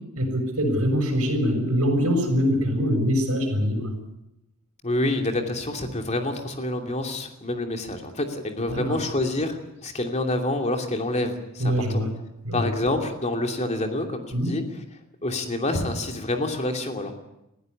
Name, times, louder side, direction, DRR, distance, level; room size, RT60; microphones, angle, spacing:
voice 1, 0.2-3.9 8.7-9.0 11.6-12.1 12.4-12.7 14.3-14.5, equal, 75° right, 2 dB, 7.2 m, -23 dB
voice 2, 4.8-12.1 12.5-14.6 15.2-17.1, left 1 dB, 30° left, 4 dB, 2.8 m, -27 dB
20.0 x 15.0 x 9.8 m, 0.88 s
head